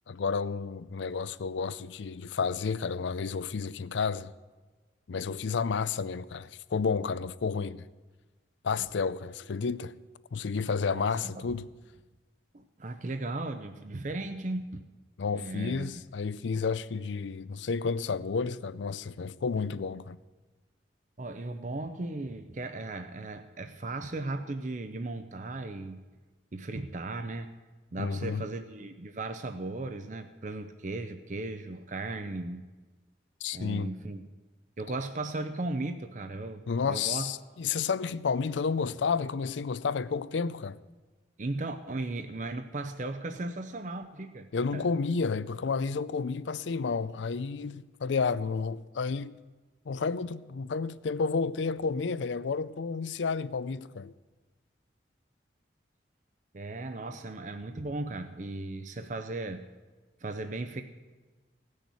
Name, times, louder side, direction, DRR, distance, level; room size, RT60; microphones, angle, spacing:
voice 1, 0.1-4.3 5.1-7.9 8.6-9.9 10.3-11.7 15.2-20.2 28.0-28.4 33.4-33.9 36.7-40.8 44.5-49.4 49.9-54.1, left 5 dB, 80° left, 0.5 m, -31 dB
voice 2, 10.8-11.4 12.5-14.9 15.3-16.0 21.2-26.0 26.5-27.6 27.9-32.7 33.5-34.3 34.8-37.3 41.4-44.8 56.5-59.7 60.2-60.8, right 2 dB, 45° right, 0.6 m, -36 dB
17.5 x 6.5 x 8.2 m
head